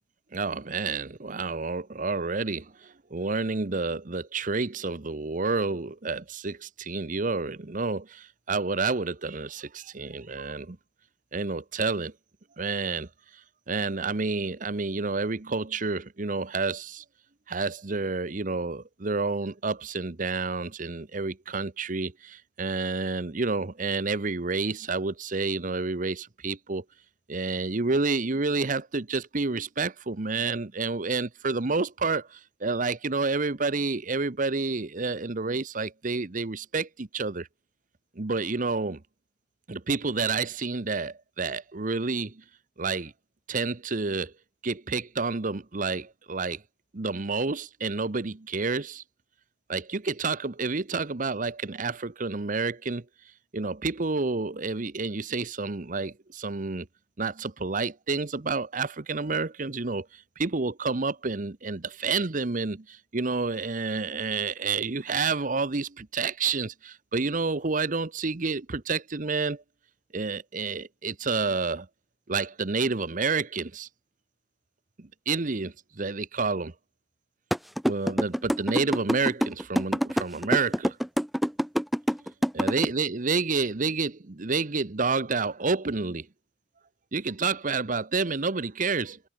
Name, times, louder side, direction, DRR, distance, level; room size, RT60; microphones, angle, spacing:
voice 1, 0.3-10.8 11.3-12.1 12.6-13.1 13.7-17.0 17.5-26.8 27.3-37.5 38.2-39.0 39.7-42.3 42.8-43.1 43.5-44.3 44.6-46.6 46.9-49.0 49.7-53.0 53.5-56.9 57.2-69.6 70.1-71.9 72.3-73.9 75.3-76.7 77.8-81.0 82.5-86.3 87.1-89.2, right 4 dB, 45° right, 0.9 m, -29 dB
sound 1, 77.5-82.8, equal, ahead, 0.5 m, -25 dB
head